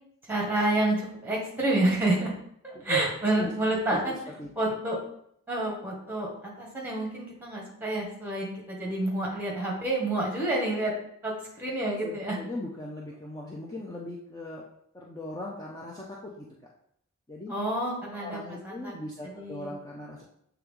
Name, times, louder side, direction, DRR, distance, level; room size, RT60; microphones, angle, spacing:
voice 1, 0.3-2.3 2.6-4.1 4.6-5.0 5.5-10.9 11.2-12.4 17.5-18.9 19.3-19.7, right 2 dB, 10° right, -2 dB, 1.4 m, -29 dB
voice 2, 3.9-4.5 12.0-14.7 14.9-16.5 17.3-17.5 18.1-20.2, left 2 dB, 15° left, -3 dB, 0.5 m, -39 dB
7.4 x 3.4 x 3.7 m, 0.71 s
head